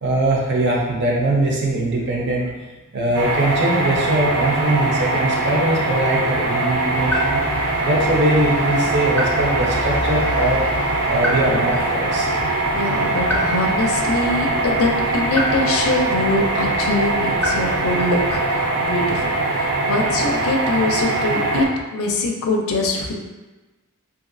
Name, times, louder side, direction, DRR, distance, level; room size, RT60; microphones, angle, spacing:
voice 1, 0.0-2.5 2.9-7.4 7.8-10.6 11.1-12.3 13.2-13.3, right 1 dB, 55° right, -2 dB, 0.6 m, -21 dB
sound 1, 3.1-21.6, right 2 dB, 85° right, 0.8 m, -22 dB
sound 2, 7.0-18.4, left 1 dB, 5° left, 0.4 m, -30 dB
voice 2, 12.4-21.7 21.9-23.1, left 2 dB, 65° left, 2 dB, 0.4 m, -23 dB
2.9 x 2.5 x 2.6 m, 1.2 s
head